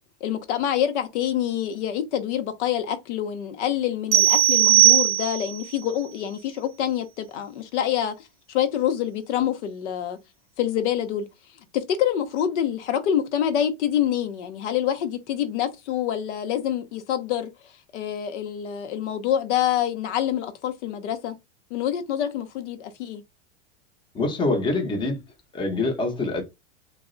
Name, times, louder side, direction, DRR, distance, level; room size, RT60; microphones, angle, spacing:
voice 1, 0.2-8.1 8.5-10.2 10.6-11.3 11.7-17.5 17.9-21.4 21.7-23.2, left 10 dB, 80° left, 0.7 m, -26 dB
sound 1, 4.1-5.6, right 14 dB, 40° right, 0.6 m, -17 dB
voice 2, 24.1-25.2 25.5-26.4, left 2 dB, 15° left, 0.6 m, -25 dB
2.3 x 2.0 x 3.6 m
supercardioid pair, 130°, 35 cm